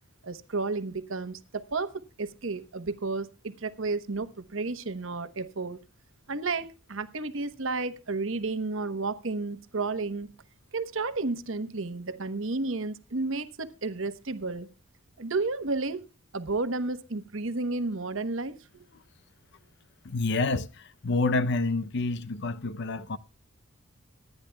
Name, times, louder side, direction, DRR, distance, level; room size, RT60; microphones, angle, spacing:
voice 1, 0.2-1.9 2.2-5.8 6.3-10.3 10.7-14.7 15.2-16.0 16.3-18.9, right 3 dB, 60° right, 1.0 m, -32 dB
voice 2, 20.1-20.7 21.0-23.2, left 3 dB, 55° left, 0.6 m, -27 dB
25.0 x 10.0 x 2.3 m
head